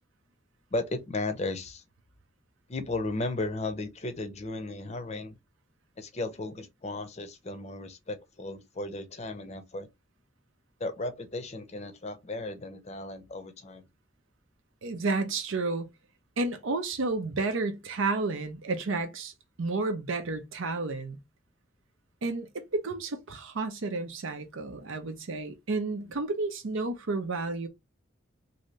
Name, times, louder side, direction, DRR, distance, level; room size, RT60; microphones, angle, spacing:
voice 1, 0.7-1.8 2.7-5.4 6.0-9.9 10.8-13.9, left 2 dB, 35° left, 0.6 m, -35 dB
voice 2, 14.8-15.9 16.4-19.3 19.6-21.2 22.2-27.7, right 3 dB, 85° right, 0.6 m, -31 dB
2.7 x 2.7 x 3.1 m
head